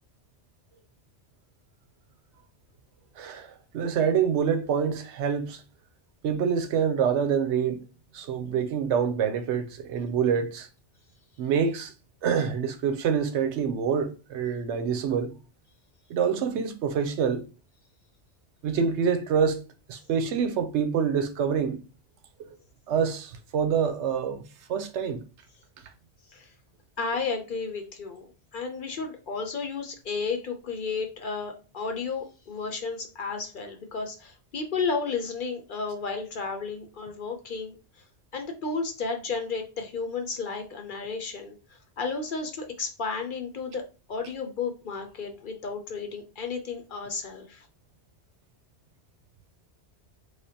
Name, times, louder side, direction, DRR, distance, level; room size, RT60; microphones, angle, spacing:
voice 1, 3.2-5.6 6.2-7.8 8.1-10.7 11.4-11.9 12.2-15.3 16.1-17.4 18.6-19.6 19.9-21.8 22.4-22.5 22.9-24.4 24.7-25.2, right 7 dB, 85° right, 0.9 m, -26 dB
voice 2, 27.0-28.3 28.5-37.8 38.3-41.6 42.0-43.8 44.1-47.7, left 4 dB, 55° left, 0.8 m, -32 dB
3.3 x 3.2 x 2.8 m
omnidirectional pair, 1.2 m